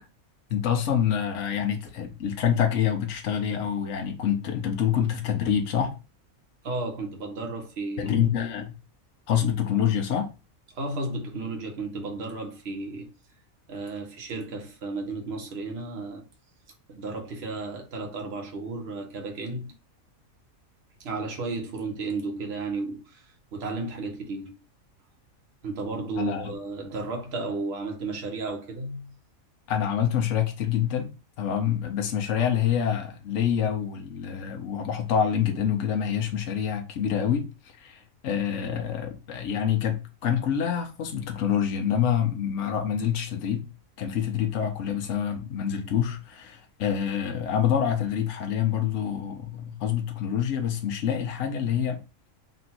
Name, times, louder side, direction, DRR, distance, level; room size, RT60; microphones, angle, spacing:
voice 1, 0.5-6.0 8.0-8.7 9.3-10.3 26.2-26.5 29.7-31.1 31.4-37.5 37.8-43.6 44.0-52.0, left 8 dB, 65° left, 1.1 m, -26 dB
voice 2, 6.6-8.2 10.7-13.1 13.7-16.2 16.9-19.7 21.0-24.5 25.6-29.1, right 3 dB, 50° right, 1.2 m, -33 dB
3.9 x 2.6 x 4.2 m
omnidirectional pair, 1.5 m